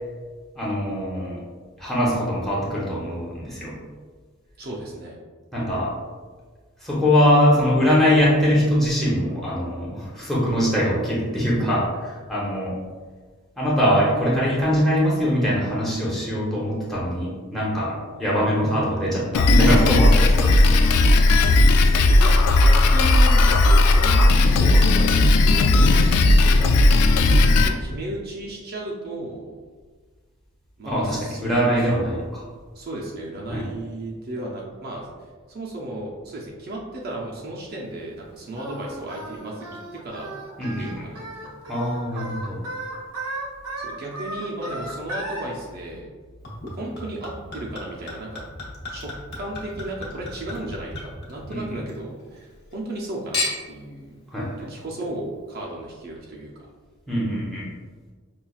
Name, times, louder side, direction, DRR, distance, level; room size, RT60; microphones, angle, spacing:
voice 1, 0.5-1.4 1.8-3.7 5.5-5.9 6.8-12.7 13.6-20.7 27.4-27.7 30.8-32.2 33.5-33.7 40.6-41.0 41.7-42.6 51.5-51.6 54.3-54.5 57.1-57.7, equal, ahead, -6 dB, 0.8 m, -22 dB
voice 2, 4.6-5.2 18.6-18.7 22.2-26.0 26.4-29.5 30.8-32.2 32.7-35.1 35.5-39.6 40.0-40.4 40.8-41.5 43.8-46.1 46.7-48.4 48.9-54.1 54.6-56.7, right 1 dB, 45° right, -3 dB, 0.5 m, -34 dB
Drum kit, 19.3-27.7, left 2 dB, 85° left, 0.3 m, -16 dB
Singing, 38.6-45.4, right 1 dB, 90° right, 0.9 m, -35 dB
Chink clink / Liquid, 46.4-52.0 52.3-53.0 53.3-53.9 54.6-54.7, left 2 dB, 45° left, 1.0 m, -34 dB
5.5 x 2.3 x 2.3 m, 1.5 s
head